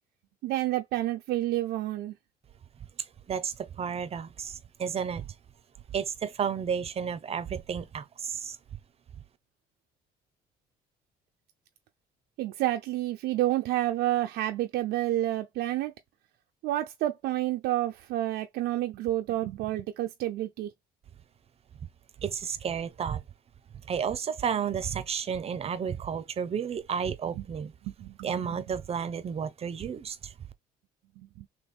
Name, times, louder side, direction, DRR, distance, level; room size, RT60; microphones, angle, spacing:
voice 1, 0.4-2.1 12.4-15.9 16.6-20.7 27.4-27.5 27.8-28.6 31.2-31.5, right 14 dB, 80° right, 0.6 m, -29 dB
voice 2, 3.3-5.2 5.9-8.6 22.2-23.2 23.9-27.7 28.2-30.3, right 7 dB, 35° right, 0.7 m, -32 dB
3.5 x 3.0 x 4.2 m
cardioid pair, 110°, 17 cm